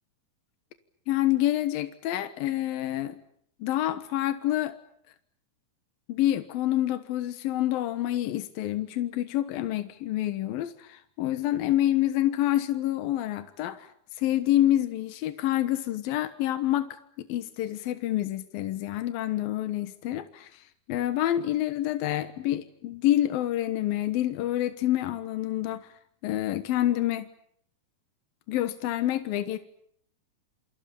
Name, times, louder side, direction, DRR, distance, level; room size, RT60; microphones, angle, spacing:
voice 1, 1.1-3.2 3.6-4.7 6.1-13.9 14.2-25.9 26.2-27.3 28.5-29.6, left 13 dB, 85° left, 11 dB, 3.1 m, -27 dB
28.0 x 27.0 x 7.1 m, 0.66 s
omnidirectional pair, 4.0 m